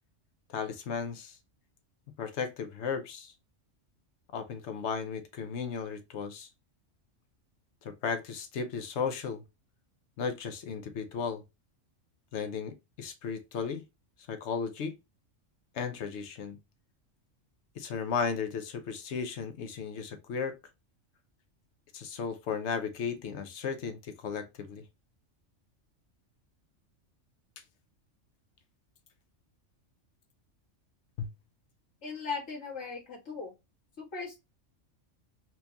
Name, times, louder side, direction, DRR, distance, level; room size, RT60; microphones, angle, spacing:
voice 1, 0.5-1.4 2.2-3.3 4.3-6.5 7.8-9.4 10.2-11.4 12.3-13.8 14.3-15.0 15.7-16.6 17.8-20.5 21.9-24.8 31.2-31.3, left 6 dB, 70° left, 0.9 m, -35 dB
voice 2, 32.0-33.5 34.0-34.4, left 4 dB, 90° left, 2.1 m, -38 dB
4.4 x 2.8 x 2.2 m
omnidirectional pair, 1.3 m